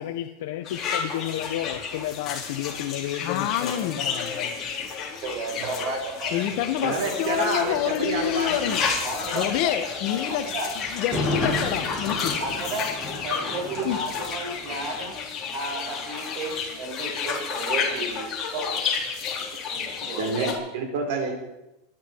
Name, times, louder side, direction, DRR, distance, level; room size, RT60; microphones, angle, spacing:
voice 1, 0.0-4.7, left 12 dB, 70° left, 1.0 m, -32 dB
sound 1, 0.6-20.5, left 6 dB, 25° left, 4.2 m, -31 dB
voice 2, 3.2-4.0 6.3-8.8 9.3-10.5 10.9-12.4 13.8-14.0, left 11 dB, 50° left, 1.3 m, -27 dB
voice 3, 5.2-6.6 9.0-9.7 10.3-10.7 12.4-12.9 13.2-15.1 15.5-18.7 19.7-20.5, right 3 dB, 45° right, 5.2 m, -33 dB
voice 4, 6.8-8.8 19.7-19.8 20.2-21.3, right 3 dB, 65° right, 4.5 m, -28 dB
Thunder, 10.9-14.9 15.1-15.2, left 1 dB, ahead, 5.5 m, -32 dB
25.5 x 10.5 x 4.7 m
supercardioid pair, 155°, 0 cm